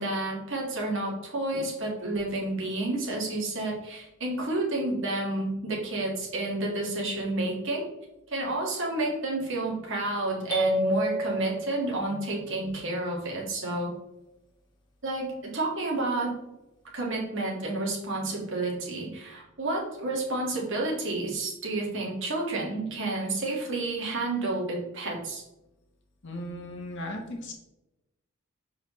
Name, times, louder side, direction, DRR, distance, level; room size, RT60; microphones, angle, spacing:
voice 1, 0.0-7.9 8.3-13.9 15.0-16.3 16.9-25.4, right 2 dB, 65° right, -2 dB, 1.8 m, -30 dB
sound 1, 10.5-12.4, equal, 20° left, 1.4 m, -29 dB
voice 2, 26.2-27.5, left 1 dB, 60° left, 1 dB, 1.1 m, -37 dB
6.5 x 4.7 x 3.1 m, 0.94 s
head